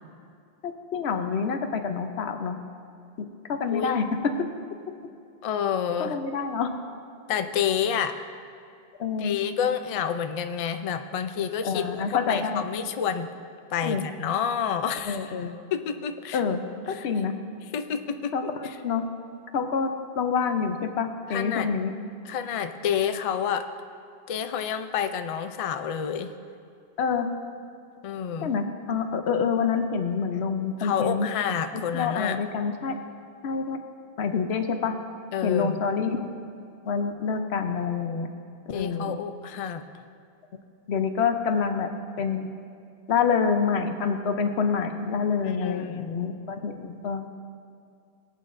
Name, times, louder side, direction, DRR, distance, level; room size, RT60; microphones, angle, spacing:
voice 1, 0.6-2.6 3.2-4.2 6.0-6.7 9.0-9.4 11.6-12.6 13.8-14.0 15.0-15.5 16.3-16.6 16.9-17.3 18.3-18.4 18.8-19.0 19.5-19.9 20.2-21.9 27.0-27.3 28.4-31.3 31.7-33.0 33.4-33.8 34.2-34.9 35.4-36.3 36.9-38.3 38.7-39.2 40.9-41.9 42.2-42.5 43.1-47.2, left 6 dB, 90° left, 7 dB, 1.0 m, -27 dB
voice 2, 5.4-6.2 7.3-8.2 9.2-13.3 13.7-15.4 15.7-16.4 16.9-17.1 17.7-18.8 21.3-21.7 22.3-23.7 24.3-26.3 28.0-28.5 30.8-32.4 35.3-35.8 38.7-39.8 45.4-46.1, left 8 dB, 50° left, 8 dB, 0.4 m, -29 dB
19.0 x 8.4 x 2.6 m, 2.4 s
omnidirectional pair, 1.1 m